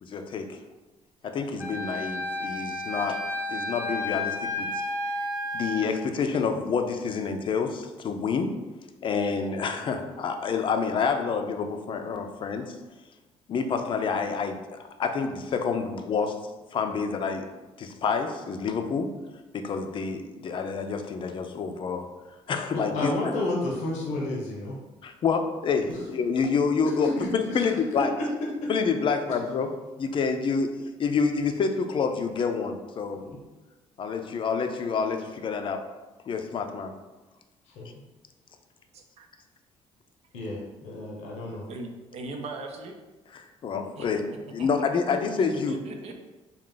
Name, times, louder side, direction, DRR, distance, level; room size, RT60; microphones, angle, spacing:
voice 1, 0.0-0.6 1.2-3.2 3.5-4.7 5.5-8.5 9.0-12.7 13.5-14.6 15.0-16.4 16.7-17.5 17.8-19.1 19.5-22.1 22.5-23.1 25.0-28.1 28.7-29.7 30.0-30.7 31.0-33.2 34.0-35.8 36.3-36.9 43.3-44.2 44.5-45.8, left 5 dB, 45° left, 6 dB, 0.4 m, -28 dB
Wind instrument woodwind instrument, 1.6-5.9, left 2 dB, 15° right, 0.8 m, -32 dB
voice 2, 22.7-24.8 25.9-26.0 27.0-27.7 28.2-28.7 33.1-33.4 37.8-37.9 40.3-41.7, left 2 dB, 90° left, -3 dB, 0.8 m, -31 dB
voice 3, 38.9-39.3 41.5-42.9 44.0-44.1 44.6-44.7 45.1-46.2, right 2 dB, 65° right, 4 dB, 0.6 m, -39 dB
3.6 x 2.4 x 3.8 m, 1.2 s
cardioid pair, 100°, 12 cm